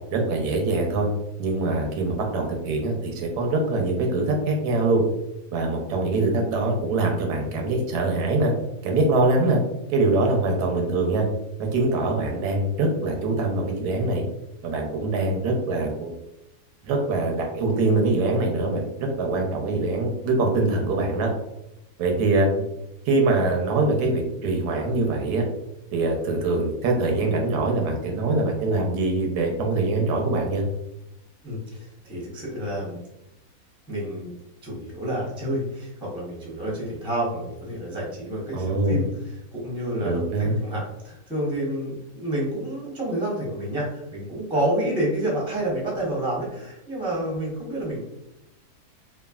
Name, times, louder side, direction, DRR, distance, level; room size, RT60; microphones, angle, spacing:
voice 1, 0.1-1.1 1.4-5.0 5.5-8.5 8.8-9.6 9.9-11.3 11.6-14.2 14.6-16.1 16.8-21.3 22.0-22.5 23.1-25.4 25.9-30.6 38.5-39.0 40.0-40.6, right 2 dB, 85° right, 1 dB, 1.2 m, -23 dB
voice 2, 31.4-33.0 33.9-34.3 34.6-39.1 39.5-48.0, right 1 dB, 5° right, -5 dB, 0.4 m, -29 dB
3.1 x 2.3 x 2.3 m, 0.88 s
omnidirectional pair, 1.7 m